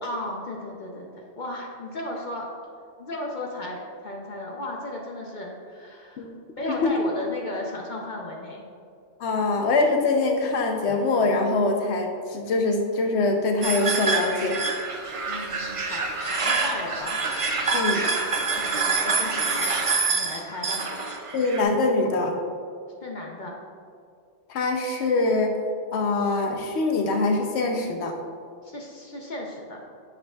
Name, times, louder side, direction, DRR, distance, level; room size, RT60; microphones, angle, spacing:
voice 1, 0.0-2.5 3.0-6.3 6.6-8.6 15.3-17.2 18.6-20.9 23.0-23.6 28.6-29.8, left 1 dB, 50° left, -1 dB, 0.7 m, -35 dB
voice 2, 6.6-7.0 9.2-14.6 17.7-18.1 21.3-22.3 24.5-25.6 25.9-28.2, left 3 dB, 75° left, 4 dB, 1.0 m, -23 dB
sound 1, 13.6-21.6, right 4 dB, 40° right, 0.5 m, -26 dB
8.6 x 5.2 x 2.3 m, 2.4 s
omnidirectional pair, 1.2 m